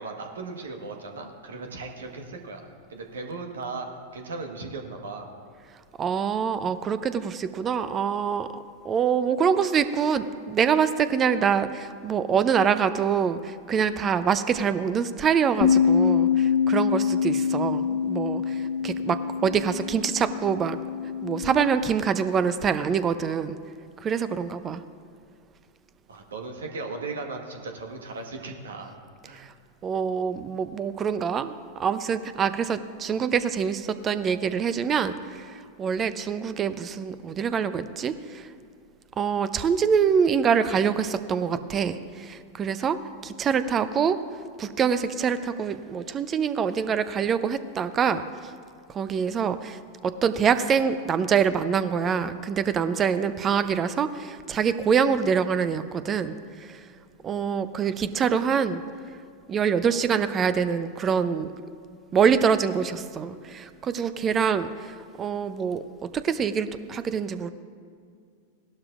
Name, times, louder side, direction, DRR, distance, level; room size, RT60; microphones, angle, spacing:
voice 1, 0.0-2.6 2.9-5.3 26.1-28.9 29.2-29.4, right 3 dB, 75° right, 3 dB, 1.4 m, -37 dB
voice 2, 6.0-20.8 21.2-23.6 24.0-24.8 29.3-29.5 29.8-38.5 39.2-44.2 44.6-48.2 48.9-56.8 57.2-58.8 59.5-61.5 62.1-67.5, right 7 dB, 30° right, 12 dB, 0.6 m, -25 dB
Bass guitar, 15.6-21.9, left 7 dB, 55° left, 1.2 m, -25 dB
17.5 x 12.0 x 2.5 m, 2.2 s
figure-of-eight pair, 95°, 0 cm